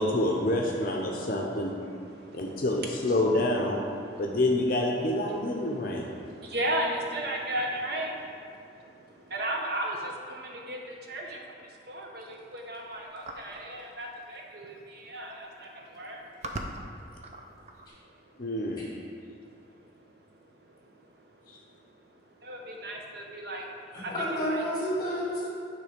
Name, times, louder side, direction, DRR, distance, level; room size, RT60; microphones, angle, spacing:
voice 1, 0.0-1.7 2.3-3.8 4.2-6.1 18.4-18.8, left 1 dB, 45° left, 0 dB, 0.6 m, -27 dB
voice 2, 1.0-2.6 3.9-4.4 5.3-16.6 18.3-18.4 19.8-19.9 20.7-20.8 22.4-24.7, right 1 dB, 55° right, 0 dB, 0.8 m, -36 dB
sound 1, 13.2-13.7 14.8-14.9 15.1-15.5 16.1-17.9, right 2 dB, 35° right, 0.5 m, -39 dB
voice 3, 23.9-25.5, equal, 20° left, -6 dB, 1.8 m, -30 dB
9.6 x 3.2 x 5.0 m, 2.3 s
head